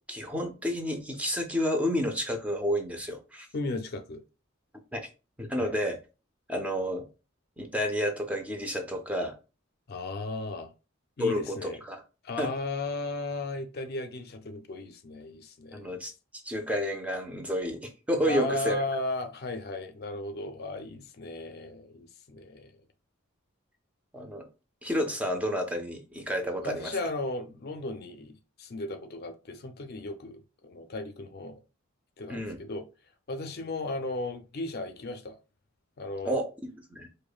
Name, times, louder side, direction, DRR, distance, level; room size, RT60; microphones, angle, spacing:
voice 1, 0.1-3.5 4.9-5.0 5.4-6.0 6.5-7.1 7.6-9.3 11.2-12.0 12.4-12.5 15.7-16.1 16.4-18.8 24.1-24.5 24.8-26.9 32.3-32.6 36.2-37.1, equal, 5° right, 0.5 m, -30 dB
voice 2, 3.5-4.2 5.6-5.8 9.9-10.7 11.2-11.8 12.2-16.0 18.3-22.7 26.6-31.6 32.2-32.9 33.3-35.4 36.0-36.4, left 2 dB, 50° left, 0.4 m, -35 dB
4.9 x 2.2 x 2.3 m
head